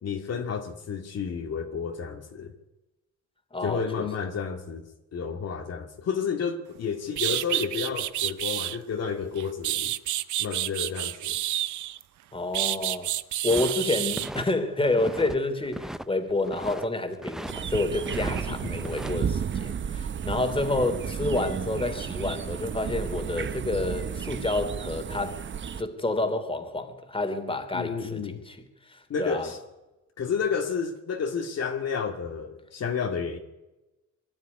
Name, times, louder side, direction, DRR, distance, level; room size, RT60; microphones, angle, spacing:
voice 1, 0.0-2.5 3.6-4.8 5.1-9.9 10.4-11.4 18.6-18.9 27.7-28.4 29.1-29.6 30.2-33.4, left 6 dB, 55° left, 2.2 m, -31 dB
voice 2, 3.5-4.1 12.3-13.1 13.4-25.4 25.8-28.6 28.9-29.5, left 2 dB, 15° left, 3.1 m, -29 dB
sound 1, 6.7-6.8 7.1-8.8 9.4-12.0 12.5-14.3, right 14 dB, 75° right, 0.8 m, -29 dB
sound 2, 13.5-14.5 14.8-15.4 15.7-16.9 17.2-17.6 18.0-19.1, equal, ahead, 0.6 m, -37 dB
sound 3, 17.5-25.8, right 7 dB, 40° right, 0.8 m, -32 dB
23.0 x 12.0 x 9.8 m
cardioid pair, 90°, 30 cm